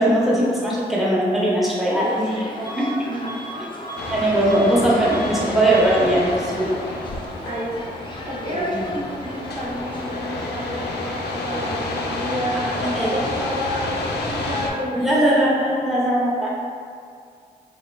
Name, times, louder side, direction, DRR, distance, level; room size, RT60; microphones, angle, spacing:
voice 1, 0.0-3.1 4.1-6.7 8.5-8.9 12.5-12.6 12.9-13.2 14.9-16.6, right 1 dB, ahead, -7 dB, 0.8 m, -20 dB
sound 1, 1.9-13.2, left 1 dB, 30° left, 0.5 m, -37 dB
Bus / Alarm, 2.6-3.0 3.2-4.8 5.1-5.4 5.7-6.1, right 3 dB, 75° right, 1.1 m, -35 dB
voice 2, 3.0-3.4 7.5-7.8 8.3-15.2, equal, 40° right, -6 dB, 0.7 m, -30 dB
sound 2, 4.0-14.7, left 2 dB, 80° left, 0.4 m, -30 dB
3.3 x 2.1 x 3.1 m, 2.2 s
cardioid pair, 55°, 17 cm